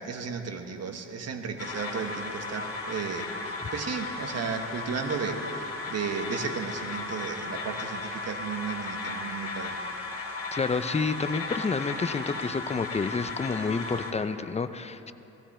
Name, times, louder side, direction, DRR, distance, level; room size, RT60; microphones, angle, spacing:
voice 1, 0.0-9.8, right 5 dB, 55° right, 5 dB, 1.5 m, -34 dB
sound 1, 1.6-14.1, left 3 dB, 50° left, 2.4 m, -36 dB
voice 2, 10.5-15.1, left 4 dB, 20° left, 11 dB, 0.6 m, -29 dB
18.0 x 15.5 x 4.4 m, 2.9 s
cardioid pair, 90°, 30 cm